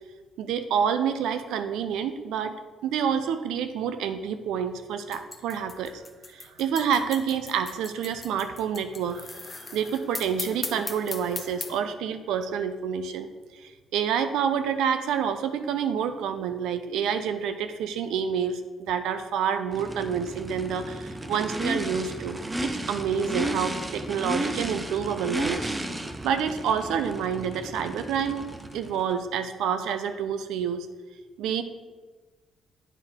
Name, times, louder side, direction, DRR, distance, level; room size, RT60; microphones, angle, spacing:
voice 1, 0.4-2.5 2.8-6.0 6.3-25.7 26.2-28.5 28.7-30.9 31.4-31.6, right 7 dB, 90° right, 10 dB, 0.5 m, -28 dB
sound 1, 5.1-11.8, left 3 dB, 25° left, 0.7 m, -38 dB
Race car auto racing / Idling / Accelerating revving vroom, 19.7-29.1, right 1 dB, 15° right, 0.6 m, -33 dB
9.0 x 3.6 x 4.5 m, 1.3 s
cardioid pair, 90°, 0 cm